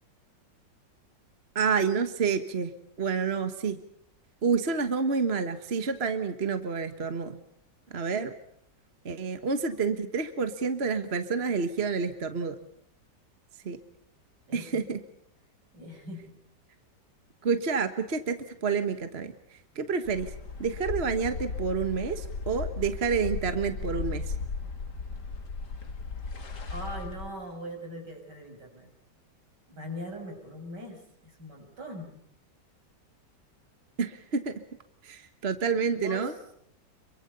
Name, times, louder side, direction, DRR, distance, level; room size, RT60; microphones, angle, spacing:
voice 1, 1.5-3.8 4.4-7.4 7.9-8.3 9.0-12.6 13.6-13.8 14.5-15.0 17.4-19.3 19.7-20.3 20.6-24.3 34.0-34.5 35.0-36.3, right 5 dB, 40° right, 9 dB, 1.5 m, -29 dB
voice 2, 14.5-14.8 15.7-16.3 26.7-28.9 29.7-32.2 35.9-36.3, equal, 70° right, 3 dB, 7.3 m, -41 dB
sound 1, 20.0-27.3, left 4 dB, 70° left, 3.1 m, -36 dB
27.0 x 23.5 x 6.9 m, 0.68 s
omnidirectional pair, 1.9 m